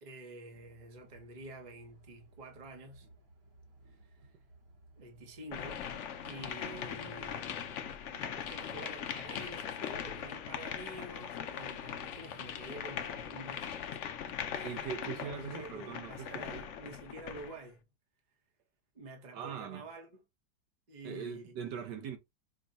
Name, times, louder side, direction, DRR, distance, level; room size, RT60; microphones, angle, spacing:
voice 1, 0.0-3.1 3.9-4.2 5.0-5.9 6.2-13.7 14.3-17.8 18.9-20.2 20.9-21.5, right 2 dB, 30° right, 0.9 m, -48 dB
sound 1, 0.5-13.9, right 2 dB, 60° right, 1.5 m, -59 dB
sound 2, 5.5-17.6, left 8 dB, 75° left, 0.6 m, -40 dB
voice 2, 14.6-16.7 19.3-19.8 21.0-22.2, right 8 dB, 75° right, 1.3 m, -41 dB
5.1 x 2.2 x 3.9 m
omnidirectional pair, 1.9 m